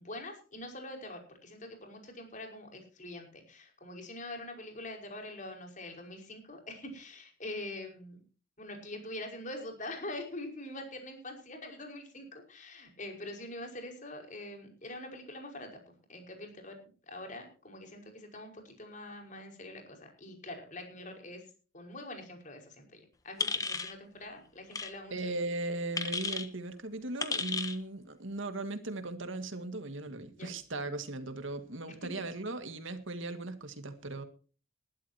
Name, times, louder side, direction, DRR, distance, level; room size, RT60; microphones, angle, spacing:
voice 1, 0.0-8.2 8.6-16.8 17.1-21.5 21.7-25.3 30.4-30.5, left 1 dB, 40° left, 5.3 m, -44 dB
sound 1, 23.4-23.9 24.7-24.9 26.0-26.5 27.2-27.8, left 4 dB, 15° left, 1.3 m, -33 dB
voice 2, 25.1-34.2, right 2 dB, 70° right, 2.1 m, -38 dB
21.0 x 12.5 x 2.9 m
head